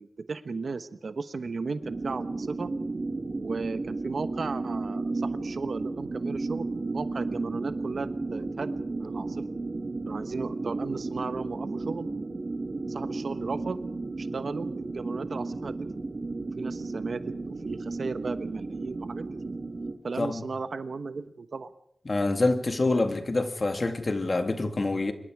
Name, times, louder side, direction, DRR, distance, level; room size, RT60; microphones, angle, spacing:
voice 1, 0.0-2.7 3.4-9.4 10.1-12.1 12.9-13.8 14.2-15.8 16.6-17.3 17.6-19.6 20.0-21.7, right 4 dB, 60° right, 1.1 m, -35 dB
sound 1, 1.8-19.9, right 3 dB, 45° right, 2.4 m, -33 dB
voice 2, 22.1-25.1, left 2 dB, 40° left, 2.0 m, -26 dB
26.0 x 23.0 x 4.9 m
wide cardioid pair, 110°, 0 cm